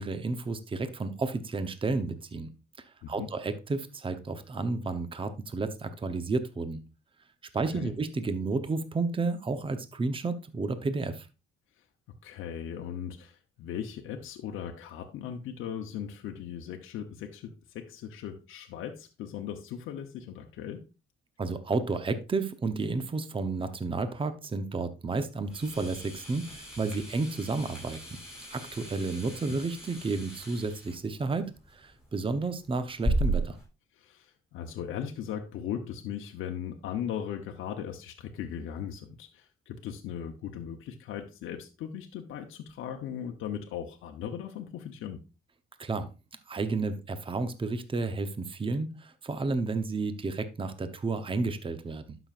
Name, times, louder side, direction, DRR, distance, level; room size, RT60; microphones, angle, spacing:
voice 1, 0.0-2.5 3.1-6.8 7.5-11.3 21.4-28.0 28.5-33.6 45.8-46.1 46.5-52.2, right 3 dB, 25° right, 10 dB, 0.8 m, -31 dB
voice 2, 12.2-20.8 29.5-29.6 33.9-45.2, left 9 dB, 85° left, 3 dB, 0.8 m, -38 dB
sound 1, 25.4-33.6, right 2 dB, 5° right, 5.0 m, -36 dB
12.0 x 6.0 x 2.5 m, 0.30 s
cardioid pair, 90°, 20 cm